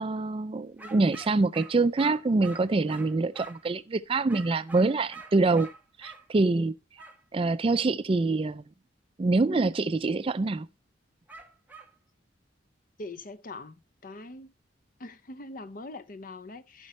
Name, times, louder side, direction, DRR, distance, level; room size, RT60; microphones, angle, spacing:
voice 1, 0.0-5.7 6.0-6.7 7.3-8.6 9.2-10.7, right 3 dB, 30° right, 0.4 m, -25 dB
sound 1, 0.8-3.7 4.3-6.3 7.0-7.2 11.3-11.9, right 3 dB, 10° right, 1.2 m, -47 dB
voice 2, 13.0-13.8 14.0-14.5 15.0-16.9, left 2 dB, 45° left, 0.7 m, -42 dB
15.5 x 5.3 x 3.1 m
head